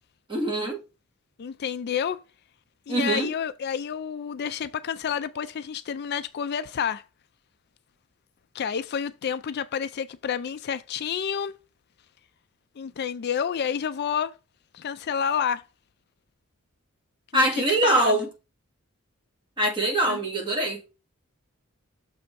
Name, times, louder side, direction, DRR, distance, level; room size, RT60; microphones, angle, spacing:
voice 1, 0.3-0.8 2.9-3.3 17.3-18.3 19.6-20.8, right 1 dB, 20° right, 1.8 m, -23 dB
voice 2, 1.4-2.2 2.9-7.1 8.5-11.6 12.8-14.3 14.7-15.6 17.3-18.2 20.1-20.2, left 7 dB, 50° left, 0.4 m, -29 dB
6.7 x 3.5 x 4.5 m
head